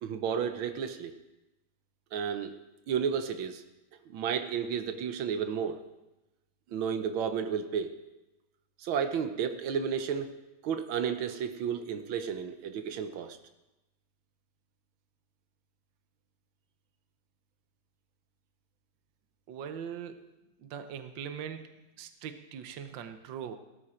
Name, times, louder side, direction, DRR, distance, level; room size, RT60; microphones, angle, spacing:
voice 1, 0.0-1.2 2.1-2.5 2.9-3.6 4.1-5.8 6.7-7.9 8.8-10.3 10.6-13.4, right 7 dB, 90° right, 9 dB, 1.7 m, -32 dB
voice 2, 19.5-20.2 20.6-21.6 22.0-23.6, right 8 dB, 70° right, 9 dB, 1.6 m, -41 dB
17.5 x 12.5 x 4.4 m, 0.98 s
omnidirectional pair, 2.1 m